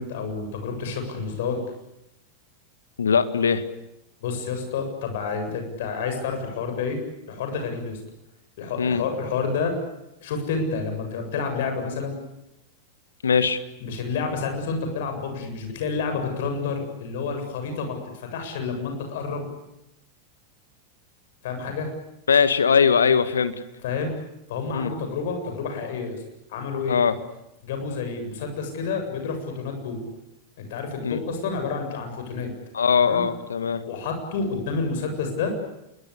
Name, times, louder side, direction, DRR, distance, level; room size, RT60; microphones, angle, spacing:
voice 1, 0.0-1.6 4.2-7.0 7.3-8.0 8.6-9.8 10.2-12.2 13.8-19.5 21.4-21.9 23.8-24.1 24.5-26.2 26.5-27.0 27.6-30.0 30.6-32.5 33.0-33.2 33.8-35.5, left 5 dB, 55° left, 5 dB, 7.7 m, -29 dB
voice 2, 3.0-3.6 8.8-9.0 13.2-13.6 22.3-23.5 24.7-24.9 26.9-27.2 31.0-31.2 32.7-33.8, left 6 dB, 70° left, 12 dB, 1.8 m, -20 dB
27.5 x 22.5 x 8.5 m, 0.88 s
figure-of-eight pair, 90°, 0 cm